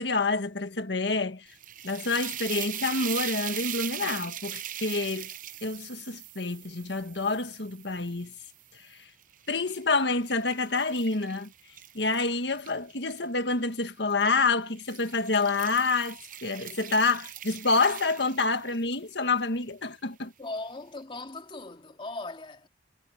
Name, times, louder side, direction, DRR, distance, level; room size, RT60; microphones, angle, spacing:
voice 1, 0.0-1.5 1.8-5.3 5.6-8.3 8.7-9.1 9.5-11.5 11.9-20.3, left 3 dB, 80° left, 1.7 m, -28 dB
sound 1, 1.5-8.7 9.2-13.2 14.1-14.4 14.8-18.9, right 11 dB, 50° right, 0.8 m, -40 dB
voice 2, 20.4-22.7, left 2 dB, 30° left, 2.5 m, -38 dB
head